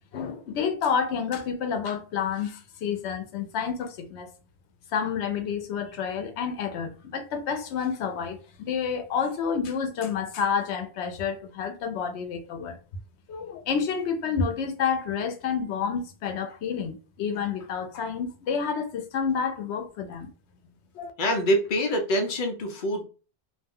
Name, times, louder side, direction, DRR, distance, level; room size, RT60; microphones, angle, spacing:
voice 1, 0.1-4.3 4.9-12.8 13.3-20.3 20.9-21.1, left 6 dB, 90° left, 0.9 m, -29 dB
voice 2, 21.2-23.0, equal, 55° left, 0.7 m, -25 dB
2.4 x 2.1 x 3.5 m
omnidirectional pair, 1.1 m